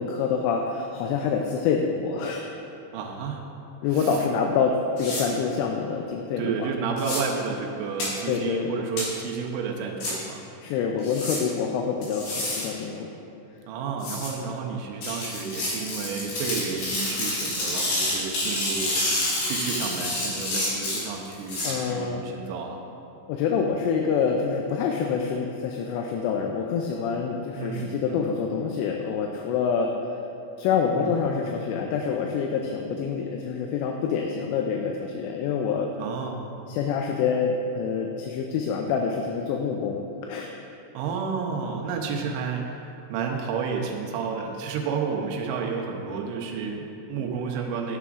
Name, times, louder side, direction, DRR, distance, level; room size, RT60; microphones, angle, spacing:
voice 1, 0.0-2.4 3.8-6.7 8.3-8.7 10.6-13.1 21.6-22.2 23.3-29.9 30.6-35.9 36.7-40.0 40.3-40.5, left 6 dB, 85° left, 2 dB, 2.5 m, -26 dB
voice 2, 2.9-3.5 3.9-4.2 6.4-10.4 13.7-22.8 27.6-28.3 30.9-31.2 36.0-36.4 40.9-48.0, right 5 dB, 90° right, 1 dB, 3.2 m, -31 dB
sound 1, 5.0-5.2 7.0-7.2 8.0-8.1 9.0-9.1 10.0-10.1 11.0-11.4 12.0-12.7 14.0-14.3 15.0-21.7, left 1 dB, 65° left, 3.5 m, -28 dB
12.0 x 6.9 x 2.5 m, 2.7 s
omnidirectional pair, 5.3 m